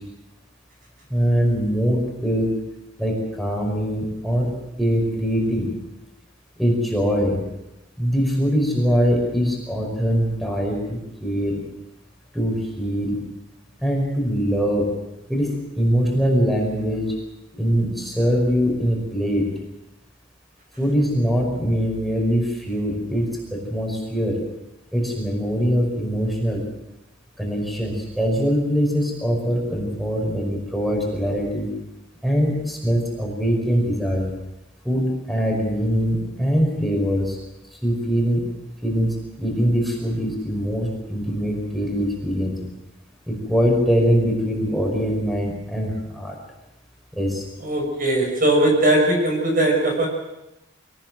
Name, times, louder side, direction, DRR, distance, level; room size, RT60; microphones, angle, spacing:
voice 1, 1.1-2.6 3.0-5.7 6.6-7.4 8.0-11.6 12.3-13.2 13.8-14.9 15.3-17.2 17.5-19.5 20.8-24.4 24.9-26.6 27.4-31.7 32.2-34.3 34.8-37.4 37.8-38.4 38.8-42.6 43.3-46.4 47.1-47.5, equal, ahead, -1 dB, 5.2 m, -22 dB
voice 2, 47.6-50.1, right 1 dB, 45° right, 2 dB, 5.9 m, -19 dB
23.5 x 18.5 x 7.7 m, 0.95 s
head